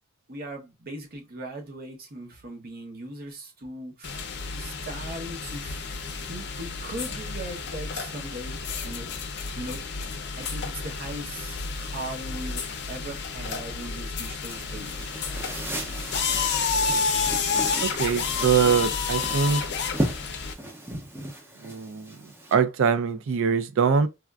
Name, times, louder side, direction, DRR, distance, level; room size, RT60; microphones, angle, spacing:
voice 1, 0.3-9.1 9.6-9.8 10.4-15.1, right 1 dB, 45° right, 0.9 m, -39 dB
sound 1, 4.0-20.5, left 5 dB, 55° left, 0.6 m, -30 dB
sound 2, 14.5-22.5, right 1 dB, 10° right, 0.6 m, -36 dB
voice 2, 17.8-19.7 21.6-24.1, right 6 dB, 65° right, 0.4 m, -23 dB
3.4 x 2.4 x 2.3 m
head